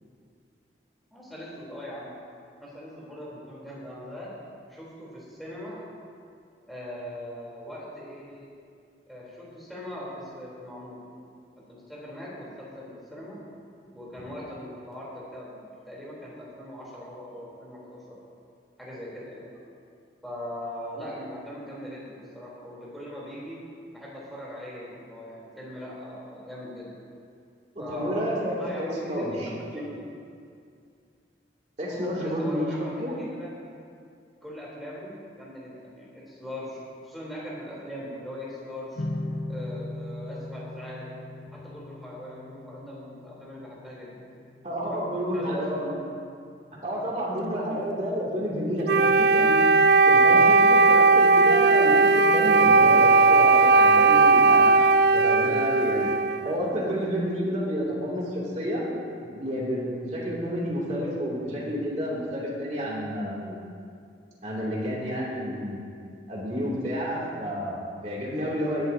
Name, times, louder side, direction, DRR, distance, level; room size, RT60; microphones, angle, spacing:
voice 1, 1.1-2.1 2.6-4.3 4.7-5.8 6.6-8.5 9.1-11.0 11.6-13.4 13.9-18.0 18.8-19.7 20.2-23.6 23.9-26.9 27.8-29.3 29.6-30.0 31.8-33.5 34.4-39.0 39.5-41.1 41.5-44.2 44.8-45.0 45.3-45.8, equal, ahead, -8 dB, 3.6 m, -40 dB
voice 2, 27.9-29.8 31.8-32.7 33.0-33.1 44.6-45.9 46.8-49.6 50.1-54.9 55.1-56.2 56.4-58.8 59.2-63.6 64.4-65.8 66.3-68.9, equal, 35° right, -5 dB, 2.8 m, -30 dB
sound 1, 39.0-46.2, left 1 dB, 85° left, 0.9 m, -39 dB
Wind instrument woodwind instrument, 48.9-56.6, right 3 dB, 65° right, 0.4 m, -18 dB
19.0 x 11.0 x 2.8 m, 2.3 s
head